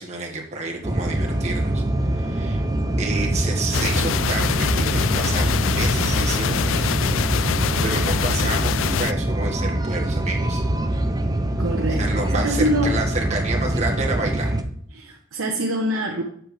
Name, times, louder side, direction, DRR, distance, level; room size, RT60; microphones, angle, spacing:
voice 1, 0.0-2.6 3.0-10.7 12.0-14.6, right 3 dB, 35° right, 0 dB, 1.7 m, -30 dB
sound 1, 0.8-14.6, right 1 dB, 20° right, 0.6 m, -24 dB
sound 2, 3.7-9.1, left 8 dB, 65° left, 0.3 m, -25 dB
voice 2, 11.6-12.9 14.9-16.2, right 1 dB, 75° right, -2 dB, 1.2 m, -25 dB
7.8 x 7.3 x 3.4 m, 0.63 s
head